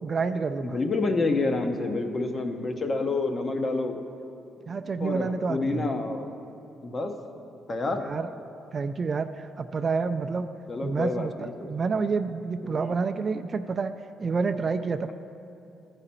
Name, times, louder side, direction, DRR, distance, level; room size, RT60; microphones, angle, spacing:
voice 1, 0.0-0.8 4.6-5.9 8.0-8.3 8.7-10.5 10.8-13.9 14.2-15.1, right 4 dB, 40° right, 9 dB, 0.3 m, -28 dB
voice 2, 0.6-4.0 5.0-6.3 6.8-7.1 7.7-8.1 10.7-11.7 12.6-12.9, left 3 dB, 35° left, 5 dB, 0.8 m, -28 dB
13.5 x 4.9 x 4.3 m, 2.8 s
cardioid pair, 90°, 0 cm